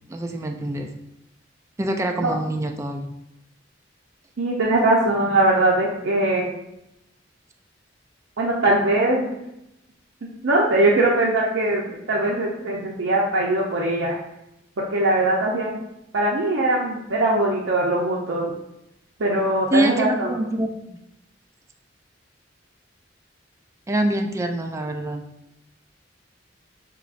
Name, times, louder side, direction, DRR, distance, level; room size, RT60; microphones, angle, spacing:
voice 1, 0.1-0.9 1.8-3.1 19.7-21.0 23.9-25.2, right 1 dB, 15° right, 4 dB, 0.3 m, -25 dB
voice 2, 4.4-6.5 8.4-9.3 10.4-14.2 14.8-15.8 16.1-18.5 19.2-20.3, right 2 dB, 70° right, -3 dB, 0.6 m, -21 dB
6.1 x 3.0 x 2.4 m, 0.84 s
head